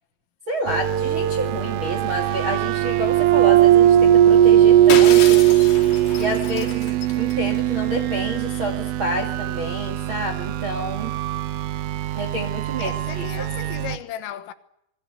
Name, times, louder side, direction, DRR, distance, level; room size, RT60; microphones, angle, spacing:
voice 1, 0.5-5.4 6.2-11.1 12.1-13.3 13.6-13.7, right 1 dB, 45° right, 1.6 m, -29 dB
sound 1, 0.7-14.0, right 12 dB, 80° right, 3.5 m, -19 dB
Shatter, 4.9-7.6, left 7 dB, 55° left, 4.0 m, -30 dB
voice 2, 12.8-14.5, left 11 dB, 80° left, 3.8 m, -35 dB
27.5 x 21.0 x 8.1 m
omnidirectional pair, 5.9 m